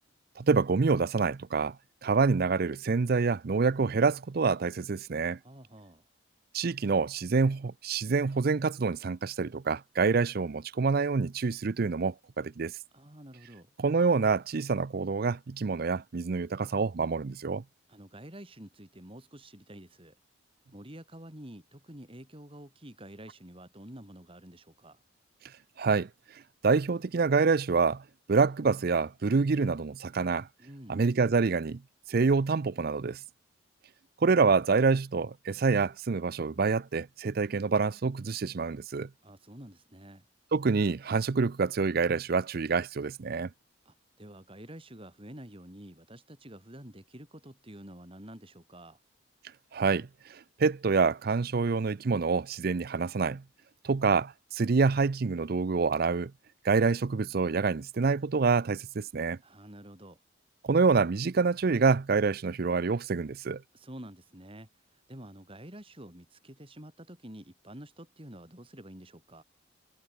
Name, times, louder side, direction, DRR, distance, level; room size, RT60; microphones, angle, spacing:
voice 1, 0.4-1.8 2.0-5.4 6.5-12.7 13.8-17.6 25.8-26.1 26.6-28.0 28.3-30.5 30.9-31.8 32.1-33.2 34.2-39.1 40.5-43.5 49.7-53.4 53.8-56.3 56.6-59.4 60.6-63.6, right 4 dB, 50° right, 0.5 m, -27 dB
voice 2, 5.4-6.0 12.9-13.7 17.9-20.1 20.7-25.0 30.6-31.0 39.2-40.2 43.8-49.0 59.4-60.2 63.7-69.4, right 1 dB, 25° right, 4.7 m, -48 dB
head